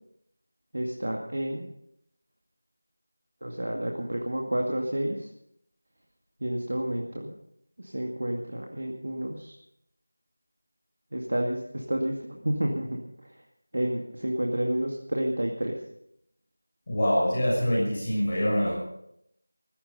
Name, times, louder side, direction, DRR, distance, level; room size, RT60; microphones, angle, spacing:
voice 1, 0.7-1.7 3.4-5.3 6.4-7.3 7.8-9.5 11.1-13.4 13.7-15.8, right 1 dB, 55° right, 0 dB, 2.2 m, -30 dB
voice 2, 16.9-18.8, equal, 30° left, -4 dB, 6.3 m, -25 dB
15.5 x 15.0 x 5.5 m, 0.75 s
figure-of-eight pair, 170°, 0 cm